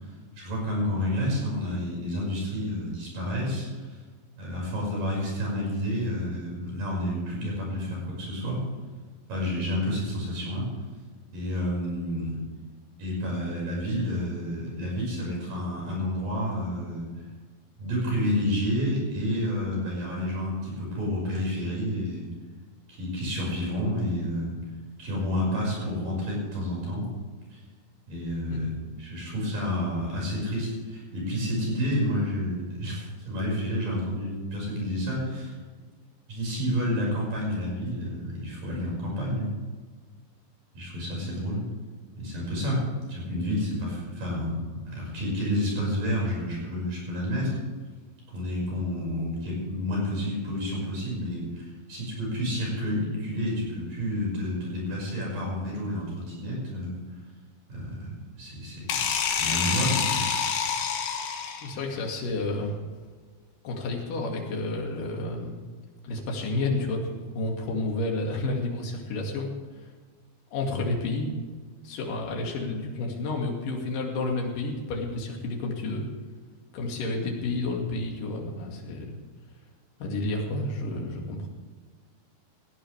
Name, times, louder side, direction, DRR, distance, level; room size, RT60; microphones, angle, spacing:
voice 1, 0.4-3.7 4.4-8.6 9.3-10.7 11.3-12.4 13.0-17.1 17.8-22.3 22.9-24.6 25.0-27.1 27.5-27.6 28.1-28.7 29.0-35.5 36.3-39.5 40.7-41.6 42.2-42.8 43.1-44.6 44.9-47.6 48.3-57.0 57.7-60.2, equal, 50° right, -3 dB, 7.3 m, -30 dB
sound 1, 58.9-61.8, left 7 dB, 75° left, 3.5 m, -27 dB
voice 2, 61.6-62.7 63.6-65.6 66.0-69.5 70.5-71.3 71.8-76.1 76.7-79.2 80.0-81.5, left 2 dB, 55° left, 0 dB, 3.5 m, -30 dB
18.0 x 15.5 x 3.4 m, 1.5 s
omnidirectional pair, 5.1 m